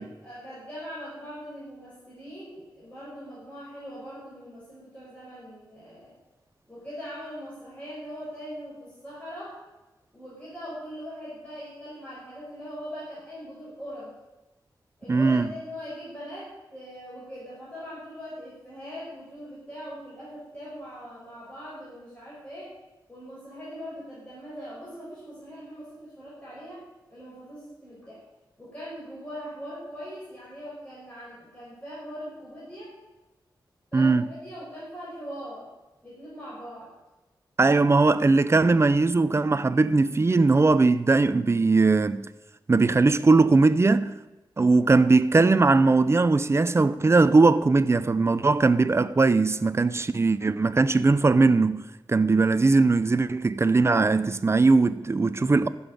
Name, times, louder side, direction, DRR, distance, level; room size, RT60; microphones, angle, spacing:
voice 1, 0.0-6.1 6.7-9.6 10.1-14.1 15.0-22.8 23.1-28.2 28.6-32.9 33.9-35.7 36.0-36.9, equal, 15° left, 5.1 m, -41 dB
voice 2, 15.1-15.4 33.9-34.2 37.6-42.3 42.7-44.1 44.6-51.8 52.1-55.7, right 3 dB, 30° right, 0.6 m, -20 dB
12.5 x 7.2 x 9.8 m
wide cardioid pair, 110°, 8 cm